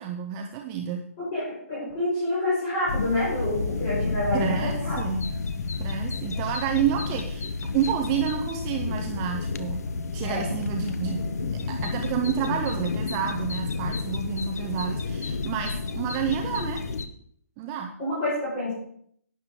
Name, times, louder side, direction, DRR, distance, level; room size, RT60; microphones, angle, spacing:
voice 1, 0.0-1.0 4.3-5.2 5.8-7.5 7.7-9.8 10.1-11.2 11.7-16.8 17.6-17.9, right 8 dB, 15° right, 3 dB, 0.5 m, -29 dB
voice 2, 1.2-5.0 10.2-10.5 18.0-18.7, left 1 dB, 25° left, -9 dB, 5.2 m, -28 dB
sound 1, 2.9-17.1, left 4 dB, 85° left, 1.0 m, -30 dB
12.0 x 9.7 x 3.7 m, 0.65 s
hypercardioid pair, 175°, 8 cm